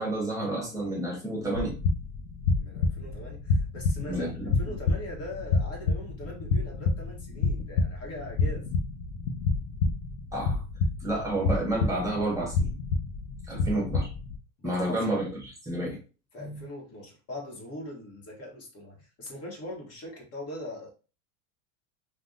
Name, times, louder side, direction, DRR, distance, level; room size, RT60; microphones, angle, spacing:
voice 1, 0.0-1.8 4.1-4.5 10.3-10.6 11.0-12.7 13.5-14.1 14.6-16.0 16.4-16.6, right 1 dB, 10° right, 0.8 m, -30 dB
sound 1, 1.5-14.4, left 3 dB, 65° left, 0.6 m, -29 dB
voice 2, 2.6-8.7 13.7-13.9 14.6-15.3 16.3-20.9, left 1 dB, 40° left, 1.2 m, -41 dB
3.4 x 2.3 x 2.5 m
supercardioid pair, 140°, 39 cm